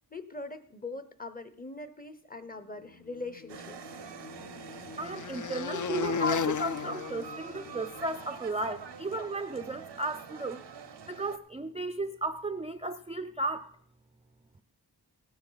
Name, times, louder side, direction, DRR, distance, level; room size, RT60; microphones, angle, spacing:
voice 1, 0.1-3.8, left 3 dB, 20° left, 11 dB, 0.8 m, -42 dB
sound 1, 3.4-8.1, left 5 dB, 50° left, 0.5 m, -35 dB
sound 2, 3.5-11.4, right 6 dB, 90° right, 0.8 m, -46 dB
voice 2, 5.0-10.6 11.1-13.7, right 2 dB, 15° right, 7 dB, 0.4 m, -34 dB
16.5 x 9.6 x 4.0 m, 0.62 s
wide cardioid pair, 60°, 41 cm